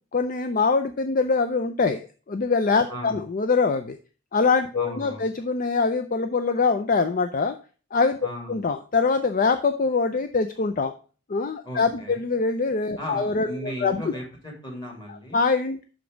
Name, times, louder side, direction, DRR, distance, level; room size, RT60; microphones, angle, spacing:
voice 1, 0.1-4.0 4.3-7.6 7.9-8.2 8.5-10.9 11.3-14.0 15.3-15.9, left 4 dB, 45° left, 9 dB, 0.4 m, -23 dB
voice 2, 2.9-3.2 4.7-5.3 8.2-8.6 11.6-12.2 13.0-15.4, equal, 25° left, 0 dB, 2.6 m, -36 dB
5.9 x 5.2 x 5.1 m, 0.37 s
head